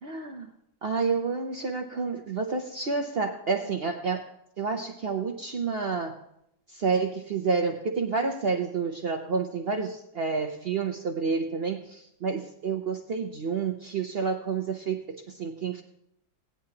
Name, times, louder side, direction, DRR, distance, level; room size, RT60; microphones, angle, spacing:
voice 1, 0.0-0.5 0.8-4.2 4.6-6.1 6.7-15.8, right 5 dB, 60° right, 3 dB, 0.6 m, -29 dB
17.5 x 9.9 x 2.8 m, 0.78 s
omnidirectional pair, 1.9 m